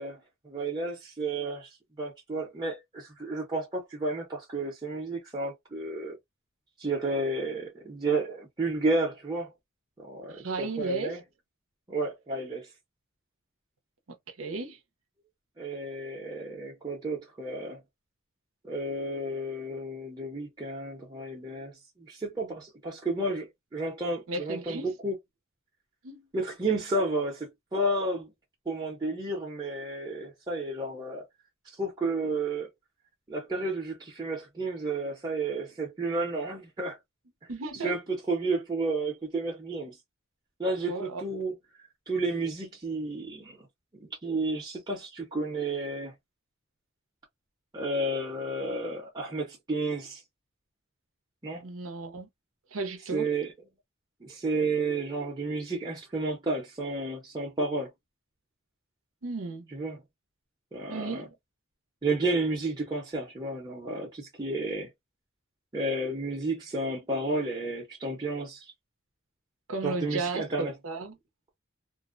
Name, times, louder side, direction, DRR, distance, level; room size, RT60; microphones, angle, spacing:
voice 1, 0.0-6.2 6.8-9.5 10.0-11.2 11.9-12.7 15.6-17.8 18.6-25.2 26.3-28.3 28.7-31.2 31.7-32.7 33.3-37.0 37.8-40.0 40.6-41.5 42.1-43.7 43.9-46.1 47.7-50.2 51.4-51.6 53.1-53.5 54.2-57.9 59.7-60.0 60.7-61.3 62.0-64.9 65.7-68.7 69.8-70.7, right 2 dB, 20° right, 0.7 m, -32 dB
voice 2, 10.3-11.2 14.4-14.8 24.3-24.9 26.0-26.3 37.5-37.9 40.9-41.2 51.6-52.3 52.7-53.3 59.2-59.7 60.9-61.3 69.7-71.2, right 3 dB, 75° right, 0.7 m, -34 dB
2.6 x 2.1 x 2.5 m
head